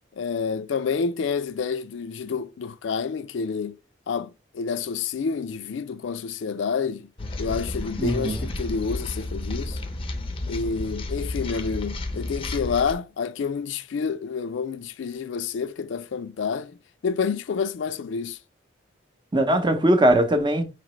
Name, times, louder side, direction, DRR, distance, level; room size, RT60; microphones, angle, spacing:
voice 1, 0.2-3.8 4.1-7.1 7.4-9.8 10.5-16.8 17.0-18.4, left 5 dB, 85° left, 0.4 m, -28 dB
sound 1, 7.2-12.9, left 2 dB, 30° left, 0.5 m, -32 dB
voice 2, 8.0-8.4 19.3-20.6, right 1 dB, 25° right, 0.7 m, -20 dB
5.1 x 2.9 x 3.1 m
head